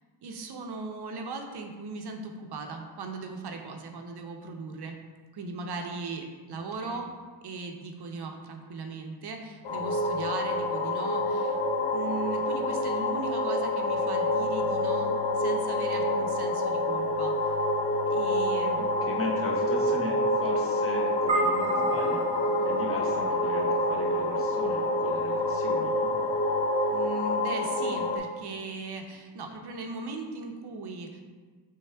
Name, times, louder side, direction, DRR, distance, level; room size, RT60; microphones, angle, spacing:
voice 1, 0.2-5.0 5.3-7.1 7.4-11.6 11.9-17.5 18.1-18.9 22.5-22.8 26.9-31.2, right 3 dB, 60° right, 3 dB, 0.6 m, -38 dB
sound 1, 9.6-28.2, left 1 dB, 75° left, 0.6 m, -27 dB
voice 2, 18.8-22.3 22.7-26.1, left 1 dB, 30° left, -2 dB, 0.7 m, -37 dB
sound 2, 21.3-25.8, right 1 dB, 15° right, 1.4 m, -34 dB
4.6 x 3.4 x 3.3 m, 1.4 s
wide cardioid pair, 140°, 44 cm